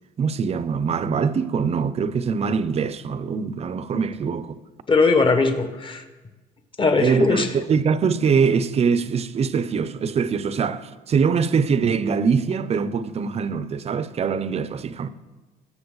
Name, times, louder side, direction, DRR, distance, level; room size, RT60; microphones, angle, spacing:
voice 1, 0.2-4.5 7.0-15.1, right 6 dB, 40° right, 0.7 m, -23 dB
voice 2, 4.9-6.0 6.8-7.5, left 4 dB, 30° left, 1.5 m, -19 dB
21.0 x 7.2 x 4.0 m
cardioid pair, 110°, 17 cm